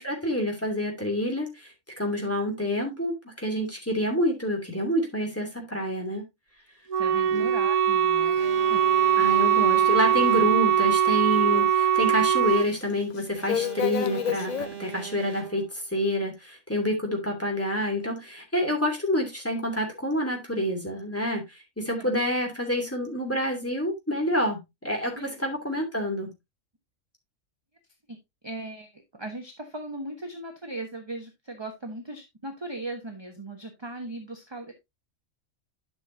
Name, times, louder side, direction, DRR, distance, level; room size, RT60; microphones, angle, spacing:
voice 1, 0.0-6.2 7.3-7.5 9.2-26.3, left 1 dB, 10° left, 1 dB, 2.7 m, -28 dB
Wind instrument woodwind instrument, 6.9-12.7, right 8 dB, 65° right, 0.4 m, -22 dB
voice 2, 7.0-9.3 22.0-22.2 25.2-25.3 28.1-28.2 28.4-34.7, right 2 dB, 20° right, 4 dB, 1.2 m, -38 dB
Alarm, 8.3-10.9 13.3-15.9, right 9 dB, 40° right, 1.7 m, -41 dB
sound 1, 10.2-10.3 11.0-11.1 11.3-12.0 12.5-12.8 13.2-14.7, left 8 dB, 60° left, 0.4 m, -30 dB
11.5 x 6.3 x 2.7 m, 0.21 s
omnidirectional pair, 1.4 m